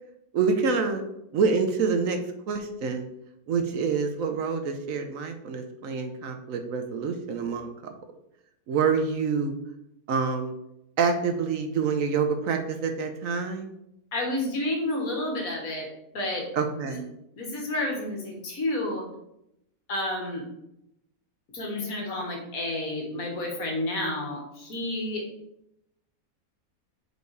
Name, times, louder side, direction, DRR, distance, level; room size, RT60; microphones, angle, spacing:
voice 1, 0.3-1.0 1.3-2.2 2.5-3.0 3.5-7.7 8.7-9.5 10.1-10.5 11.0-13.7 16.5-17.0, right 5 dB, 65° right, 6 dB, 1.0 m, -26 dB
voice 2, 14.1-15.9 16.1-16.4 16.8-17.0 17.4-19.1 19.9-20.4 21.5-25.2, left 1 dB, 65° left, 1 dB, 1.8 m, -30 dB
5.2 x 4.7 x 4.7 m, 0.82 s
omnidirectional pair, 1.6 m